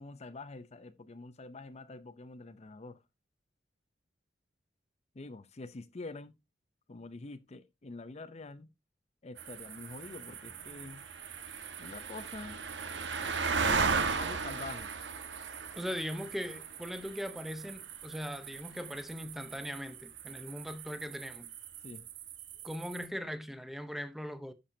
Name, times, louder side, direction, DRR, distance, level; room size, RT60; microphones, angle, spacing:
voice 1, 0.0-3.0 5.1-6.4 6.9-8.7 9.2-11.0 11.8-12.6 13.5-14.9 21.8-22.0, left 3 dB, 35° left, 0.6 m, -46 dB
sound 1, 9.4-23.1, right 5 dB, 70° right, 1.4 m, -37 dB
voice 2, 15.8-21.5 22.6-24.5, equal, ahead, 0.8 m, -40 dB
11.5 x 6.9 x 2.7 m
head